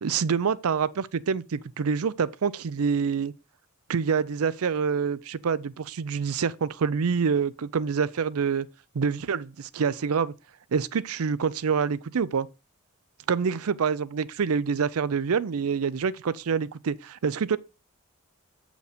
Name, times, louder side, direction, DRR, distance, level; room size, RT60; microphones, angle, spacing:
voice 1, 0.0-3.3 3.9-8.7 8.9-10.3 10.7-12.5 13.3-17.6, right 6 dB, 85° right, 0.5 m, -26 dB
8.0 x 5.1 x 5.0 m
head